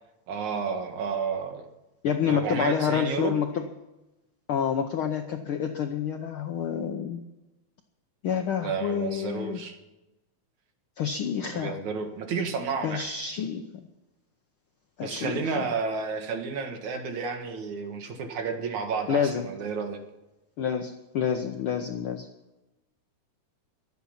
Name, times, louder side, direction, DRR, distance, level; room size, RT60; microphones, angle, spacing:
voice 1, 0.3-1.6 2.3-3.3 8.6-9.8 11.5-13.0 15.0-20.0, right 5 dB, 70° right, 5 dB, 2.9 m, -31 dB
voice 2, 2.0-3.7 4.5-7.2 8.2-9.6 11.0-11.8 12.8-13.9 15.0-15.7 19.1-19.5 20.6-22.3, left 8 dB, 75° left, 5 dB, 1.2 m, -28 dB
22.5 x 8.6 x 5.8 m, 0.98 s
omnidirectional pair, 3.5 m